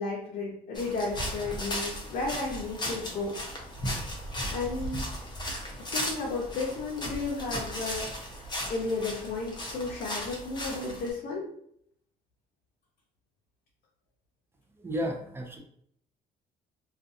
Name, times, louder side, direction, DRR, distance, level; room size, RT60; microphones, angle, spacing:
voice 1, 0.0-3.3 4.5-5.0 5.8-8.2 8.7-11.5, left 3 dB, 60° left, -4 dB, 0.7 m, -33 dB
sound 1, 0.7-11.1, equal, 25° left, 0.7 m, -36 dB
voice 2, 14.8-15.6, equal, 15° right, 2 dB, 0.5 m, -33 dB
2.5 x 2.3 x 2.6 m, 0.68 s
cardioid pair, 110°, 17 cm